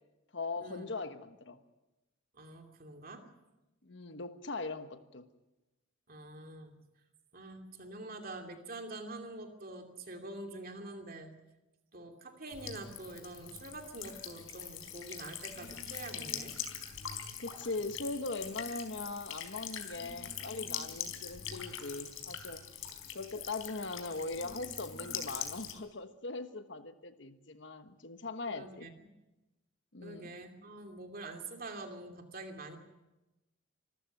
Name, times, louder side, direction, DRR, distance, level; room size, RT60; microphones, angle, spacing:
voice 1, 0.3-1.6 3.8-5.3 17.4-22.6 23.1-28.9 29.9-30.4, left 3 dB, 60° left, 10 dB, 1.2 m, -40 dB
voice 2, 2.3-3.2 6.1-6.8 7.3-11.3 11.9-16.5 28.5-29.2 30.0-32.8, right 2 dB, 45° right, 4 dB, 2.8 m, -46 dB
Buzz / Water tap faucet / Trickle dribble, 12.5-25.7, left 8 dB, 90° left, 4.0 m, -43 dB
26.0 x 14.0 x 9.1 m, 1.0 s
head